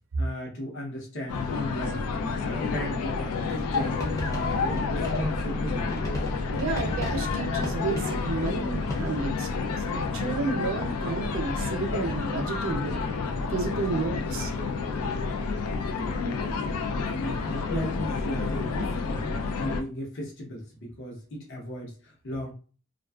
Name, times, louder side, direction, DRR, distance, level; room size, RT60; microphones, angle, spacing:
voice 1, 0.2-2.0 2.4-6.0 16.8-19.2 19.6-22.5, equal, 55° left, -1 dB, 0.8 m, -36 dB
sound 1, 1.3-19.8, left 4 dB, 85° left, 0.4 m, -29 dB
sound 2, 3.7-9.3, equal, 15° left, 0.6 m, -37 dB
voice 2, 6.5-13.0 13.5-14.5, right 3 dB, 60° right, 5 dB, 0.5 m, -31 dB
2.4 x 2.3 x 2.2 m, 0.37 s
head